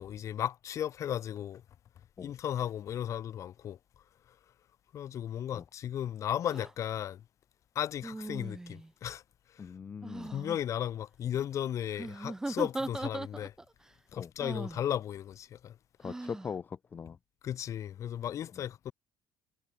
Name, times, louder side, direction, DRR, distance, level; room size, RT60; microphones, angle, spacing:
voice 1, 0.0-1.6 2.2-3.8 4.9-7.2 7.8-9.2 9.5-9.7 10.3-13.5 14.1-15.8 17.4-18.9, left 10 dB, 45° left, 3.9 m, -35 dB
sound 1, 6.5-6.7 8.0-8.9 10.0-10.6 11.9-13.7 14.4-14.8 16.0-16.5, right 2 dB, 5° right, 0.7 m, -39 dB
voice 2, 9.6-10.3 14.1-14.3 16.0-17.2, left 6 dB, 25° left, 1.2 m, -41 dB
cardioid pair, 150°, 8 cm